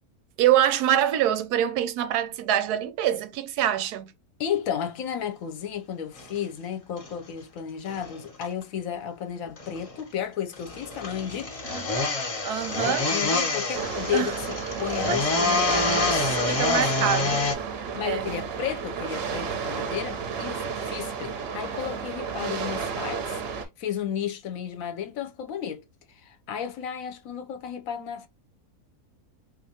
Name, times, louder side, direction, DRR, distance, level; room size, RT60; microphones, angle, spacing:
voice 1, 0.4-4.1 11.6-11.9 12.4-13.1 14.1-14.3 15.1-15.4 16.5-17.5 18.0-18.3, right 11 dB, 90° right, 1.2 m, -25 dB
voice 2, 4.4-11.5 12.8-17.1 17.9-25.8 26.1-28.3, left 9 dB, 70° left, 0.9 m, -33 dB
sound 1, 6.2-6.4 7.0-7.1 7.9-8.6 9.5-10.0 10.5-17.5, left 3 dB, 50° left, 0.4 m, -27 dB
sound 2, 13.7-23.6, right 6 dB, 60° right, 0.7 m, -32 dB
3.6 x 2.7 x 2.7 m
omnidirectional pair, 1.6 m